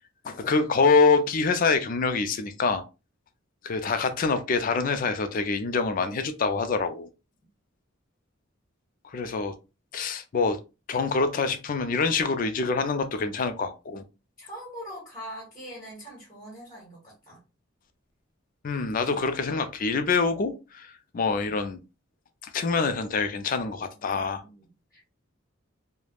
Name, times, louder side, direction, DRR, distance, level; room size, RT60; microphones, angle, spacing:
voice 1, 0.2-2.8 3.6-7.1 9.1-9.5 9.9-10.6 10.9-14.0 18.6-21.8 22.4-24.4, left 4 dB, 45° left, 0.4 m, -25 dB
voice 2, 14.4-17.4 21.4-21.5 24.1-25.0, equal, 20° left, 1.2 m, -43 dB
3.2 x 2.1 x 2.3 m
head